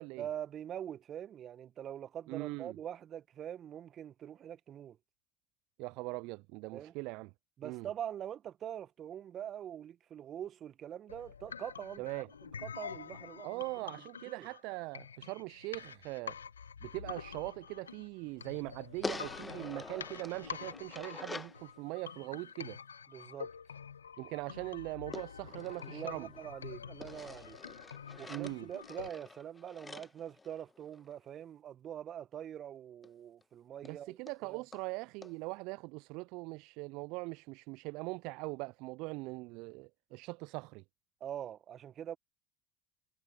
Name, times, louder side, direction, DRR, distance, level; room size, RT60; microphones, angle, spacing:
voice 1, 0.2-5.0 6.7-6.9 7.6-12.0 12.6-13.6 14.3-14.5 23.1-23.5 25.9-27.6 28.2-34.6 41.2-42.2, right 10 dB, 45° right, 1.5 m, -44 dB
voice 2, 2.3-2.8 5.8-7.3 7.6-7.9 12.0-12.3 13.4-16.4 16.8-22.8 24.2-26.3 28.3-28.7 33.8-40.8, right 25 dB, 60° right, 0.5 m, -41 dB
sound 1, 11.1-29.1, left 7 dB, 90° left, 1.3 m, -47 dB
sound 2, 19.0-21.6 25.1-26.5 27.0-31.1 33.0-33.1 33.4-33.5 33.9-34.0 34.3-34.4 34.7-34.9 35.2-35.3, left 3 dB, 20° left, 1.3 m, -46 dB
hypercardioid pair, 70°, 0 cm